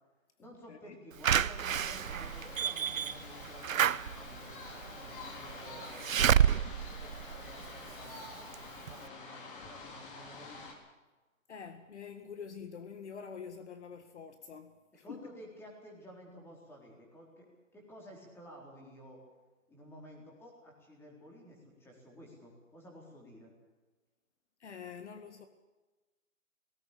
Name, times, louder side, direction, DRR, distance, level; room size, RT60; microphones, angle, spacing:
voice 1, 0.4-6.3 7.0-10.6 15.0-17.5 17.7-19.2 19.7-23.5, equal, 5° left, -1 dB, 4.1 m, -53 dB
Slam / Alarm, 1.2-8.1 8.5-8.6 8.9-9.0, right 8 dB, 75° right, 0.9 m, -30 dB
sound 1, 1.7-10.7, left 3 dB, 40° left, 4.2 m, -48 dB
voice 2, 11.5-15.2 24.6-25.5, left 6 dB, 55° left, 9 dB, 1.9 m, -46 dB
18.5 x 17.5 x 8.5 m, 1.2 s
hypercardioid pair, 155°, 40 cm